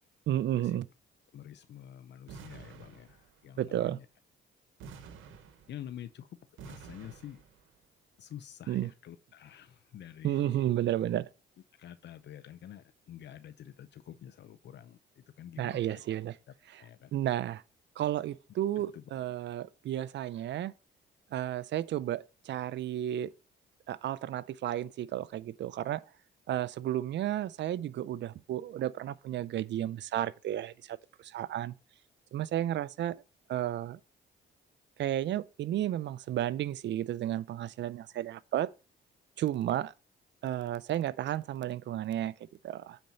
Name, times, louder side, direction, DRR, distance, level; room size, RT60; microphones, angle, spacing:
voice 1, 0.3-0.9 3.6-4.0 8.7-8.9 10.2-11.3 15.6-16.4 16.6-17.6 18.0-20.7 21.3-23.3 23.9-26.1 26.5-31.7 32.3-33.2 33.5-34.0 35.0-38.7 39.4-39.9 40.4-43.0, right 12 dB, 65° right, 0.6 m, -32 dB
voice 2, 1.3-4.0 5.7-6.3 6.7-7.4 8.2-10.7 11.8-15.0 15.4-15.8 16.8-17.1 18.9-19.0, left 10 dB, 65° left, 0.6 m, -48 dB
sound 1, 2.3-3.5 4.8-6.1 6.6-7.7, right 6 dB, 85° right, 1.2 m, -50 dB
9.3 x 4.4 x 5.3 m
cardioid pair, 90°, 20 cm